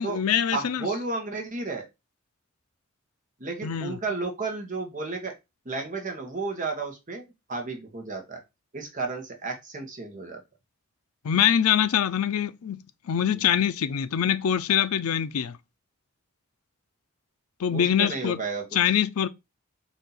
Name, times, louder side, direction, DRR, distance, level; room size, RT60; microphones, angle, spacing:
voice 1, 0.0-0.9 3.6-3.9 11.2-15.6 17.6-18.4 18.7-19.3, left 9 dB, 85° left, 0.4 m, -24 dB
voice 2, 0.5-1.9 3.4-5.3 5.6-8.4 8.7-10.4 13.3-13.4 17.7-18.6, right 3 dB, 35° right, 1.1 m, -32 dB
4.2 x 2.8 x 3.8 m
head